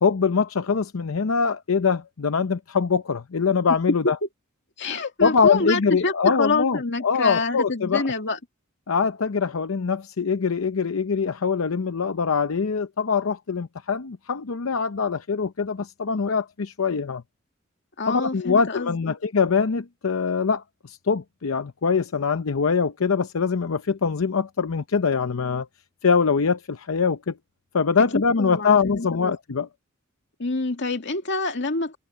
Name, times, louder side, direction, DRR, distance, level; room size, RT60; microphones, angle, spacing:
voice 1, 0.0-4.2 5.2-8.0 8.9-17.2 18.1-25.7 26.0-27.3 27.7-29.7, left 5 dB, 85° left, 0.7 m, -23 dB
voice 2, 4.8-8.4 18.0-19.0 28.1-29.4 30.4-32.0, left 3 dB, 60° left, 2.4 m, -27 dB
head